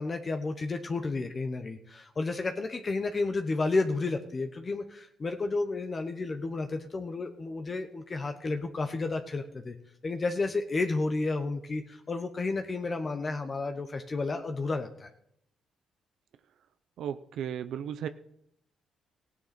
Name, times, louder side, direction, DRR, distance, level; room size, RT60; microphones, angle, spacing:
voice 1, 0.0-9.8 10.0-15.1, left 3 dB, 35° left, 6 dB, 1.1 m, -31 dB
voice 2, 17.0-18.1, right 9 dB, 75° right, 10 dB, 0.6 m, -35 dB
16.0 x 9.7 x 4.3 m, 0.73 s
cardioid pair, 90°, 0 cm